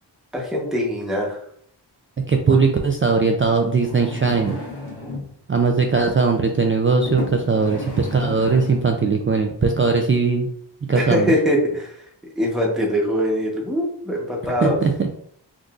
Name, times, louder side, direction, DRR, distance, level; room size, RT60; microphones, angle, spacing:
voice 1, 0.3-1.4 10.9-12.0 12.4-14.8, equal, ahead, -2 dB, 1.0 m, -22 dB
voice 2, 2.3-4.6 5.5-10.5 10.9-11.3 14.6-14.9, right 4 dB, 30° right, 3 dB, 0.4 m, -19 dB
sound 1, 3.7-5.3 6.2-6.4 7.0-9.0 9.7-9.8, left 2 dB, 65° left, 1.3 m, -33 dB
3.8 x 2.5 x 2.4 m, 0.65 s
cardioid pair, 40°, 44 cm